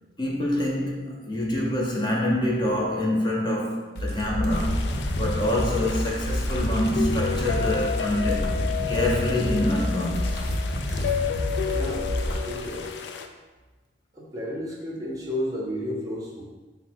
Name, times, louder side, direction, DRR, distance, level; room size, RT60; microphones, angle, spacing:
voice 1, 0.2-4.9 5.1-8.5 8.9-10.4, left 1 dB, 25° left, -3 dB, 0.6 m, -26 dB
sound 1, 4.0-12.4, left 1 dB, 60° left, 0.8 m, -28 dB
sound 2, 4.5-13.3, left 8 dB, 85° left, 0.3 m, -32 dB
voice 2, 11.7-12.9 14.1-16.4, equal, 20° right, -4 dB, 0.6 m, -33 dB
4.6 x 2.0 x 4.4 m, 1.2 s
head